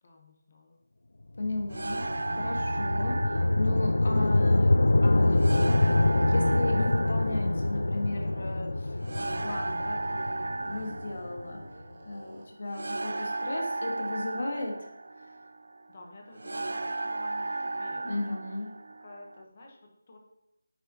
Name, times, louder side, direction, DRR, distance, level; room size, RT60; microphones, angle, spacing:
voice 1, 0.0-0.8 11.1-11.3 15.9-18.5 19.0-20.2, left 2 dB, 25° left, 1 dB, 1.0 m, -51 dB
sound 1, 1.4-11.7, left 2 dB, 85° left, 0.3 m, -25 dB
voice 2, 1.4-2.1 2.4-5.8 6.2-11.7 12.0-14.9 18.0-18.7, left 2 dB, 50° left, 2 dB, 1.5 m, -35 dB
sound 2, 1.7-19.4, right 2 dB, 65° right, 0.4 m, -35 dB
sound 3, 5.1-9.9 10.5-12.7, right 2 dB, 25° right, 0.9 m, -54 dB
9.3 x 6.5 x 2.9 m, 0.88 s
figure-of-eight pair, 180°, 0 cm